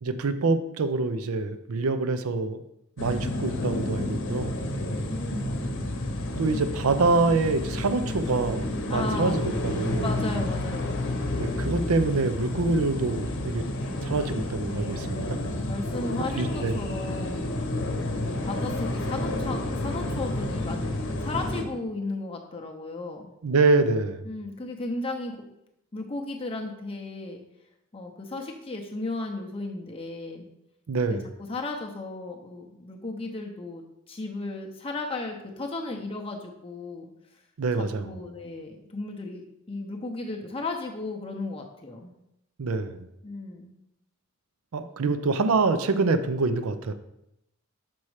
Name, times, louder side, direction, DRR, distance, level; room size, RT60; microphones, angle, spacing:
voice 1, 0.0-2.6 3.0-4.6 6.4-10.1 11.4-13.6 14.0-15.2 16.4-16.8 23.4-24.3 30.9-31.2 37.6-38.1 42.6-43.1 44.7-46.9, right 3 dB, 75° right, 10 dB, 0.5 m, -25 dB
sound 1, 3.0-21.6, left 1 dB, 55° left, 0.9 m, -30 dB
voice 2, 4.9-5.5 8.9-9.4 10.0-11.0 14.7-17.5 18.1-23.3 24.2-25.4 25.9-27.4 27.9-30.5 31.1-31.2 31.5-37.1 37.8-42.1 43.2-43.7, left 2 dB, 25° left, 2 dB, 0.6 m, -35 dB
6.1 x 4.2 x 4.8 m, 0.83 s
head